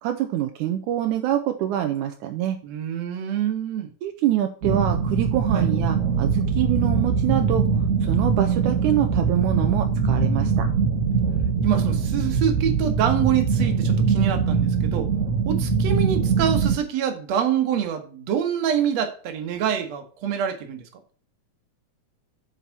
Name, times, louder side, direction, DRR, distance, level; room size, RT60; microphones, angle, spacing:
voice 1, 0.0-2.6 4.0-7.7 8.0-10.7 15.5-15.7, right 12 dB, 80° right, 7 dB, 2.2 m, -25 dB
voice 2, 2.6-3.9 5.5-5.7 11.6-15.1 15.5-20.9, right 9 dB, 60° right, 7 dB, 2.5 m, -26 dB
sound 1, 4.6-16.8, right 5 dB, 30° right, 1.8 m, -22 dB
8.2 x 5.9 x 5.9 m, 0.42 s
omnidirectional pair, 3.5 m